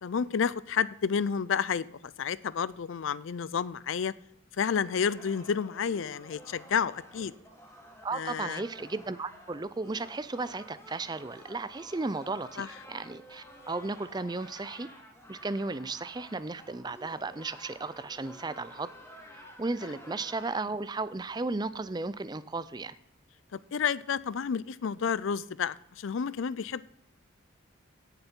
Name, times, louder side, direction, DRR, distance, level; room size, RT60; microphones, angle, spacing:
voice 1, 0.0-4.1 4.6-7.3 8.1-8.6 12.6-12.7 23.5-26.8, left 6 dB, 70° left, 19 dB, 0.4 m, -30 dB
sound 1, 4.7-20.6, equal, 15° left, 1.5 m, -51 dB
voice 2, 8.0-14.9 15.3-18.9 19.3-22.9, right 3 dB, 20° right, 15 dB, 0.4 m, -35 dB
17.0 x 6.8 x 4.5 m, 0.80 s
head